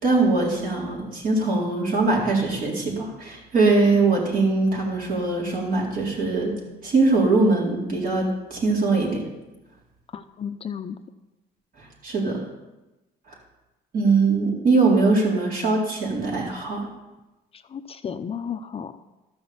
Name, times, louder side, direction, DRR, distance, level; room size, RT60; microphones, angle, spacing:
voice 1, 0.0-6.5 6.8-9.2 11.8-12.4 13.9-16.9, right 3 dB, 55° right, -2 dB, 4.0 m, -22 dB
voice 2, 10.1-11.0 17.5-19.0, left 7 dB, 35° left, 9 dB, 0.6 m, -33 dB
13.0 x 6.2 x 7.2 m, 1.0 s
cardioid pair, 110°, 17 cm